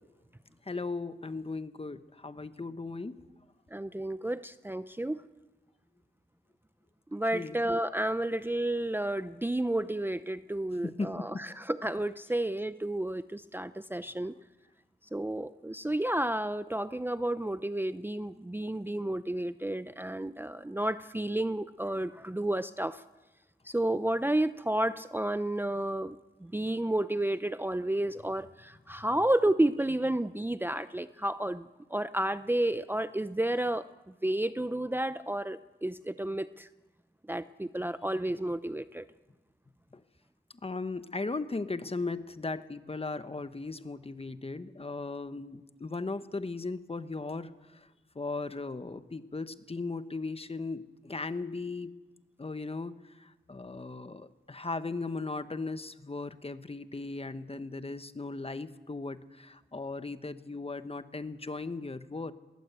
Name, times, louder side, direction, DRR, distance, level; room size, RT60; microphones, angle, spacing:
voice 1, 0.7-3.2 7.3-7.6 10.8-11.4 39.9-40.0 40.6-47.9 48.1-51.9 52.4-62.3, left 3 dB, 30° left, 12 dB, 1.2 m, -37 dB
voice 2, 3.7-5.2 7.1-14.3 15.1-23.0 23.7-33.8 34.2-36.7 37.3-39.1, right 1 dB, 10° right, 13 dB, 0.6 m, -31 dB
20.0 x 19.0 x 8.2 m, 1.1 s
cardioid pair, 65°, 18 cm